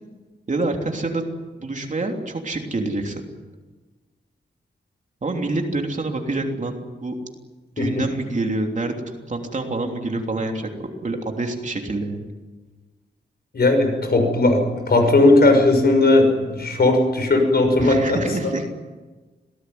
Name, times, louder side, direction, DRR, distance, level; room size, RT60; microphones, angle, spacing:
voice 1, 0.5-1.2 1.6-3.2 5.2-6.8 7.0-7.2 7.8-8.9 9.3-12.3 17.8-18.7, right 2 dB, 40° right, 2 dB, 3.3 m, -26 dB
voice 2, 13.5-18.3, left 2 dB, 55° left, 5 dB, 6.2 m, -17 dB
26.5 x 18.5 x 9.5 m, 1.3 s
wide cardioid pair, 150°, 19 cm